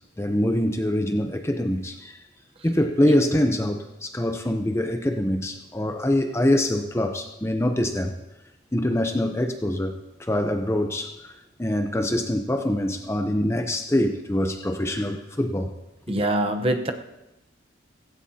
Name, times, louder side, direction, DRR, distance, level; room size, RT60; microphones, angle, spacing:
voice 1, 0.2-2.2 2.6-8.1 8.7-11.3 11.6-15.7 16.1-16.2, left 1 dB, 15° left, 0.7 m, -24 dB
voice 2, 16.1-16.9, right 1 dB, 30° right, 0.9 m, -23 dB
16.5 x 16.0 x 2.8 m
head